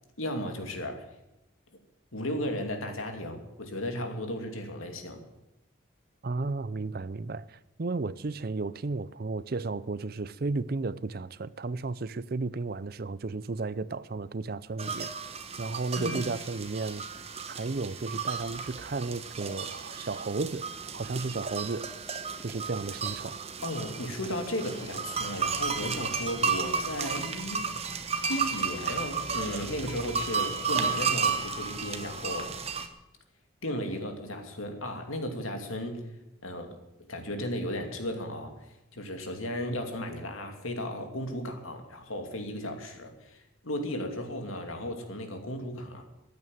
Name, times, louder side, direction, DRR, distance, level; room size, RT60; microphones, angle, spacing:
voice 1, 0.2-1.1 2.1-5.2 16.0-16.2 23.6-27.7 28.3-32.5 33.6-36.0 36.4-46.0, left 1 dB, 90° left, 2.6 m, -35 dB
voice 2, 6.2-15.1 15.6-17.2 17.5-21.9 22.4-23.4, right 3 dB, 45° right, 0.5 m, -33 dB
sound 1, 14.8-32.9, right 5 dB, 30° right, 1.1 m, -33 dB
14.5 x 9.4 x 9.2 m
head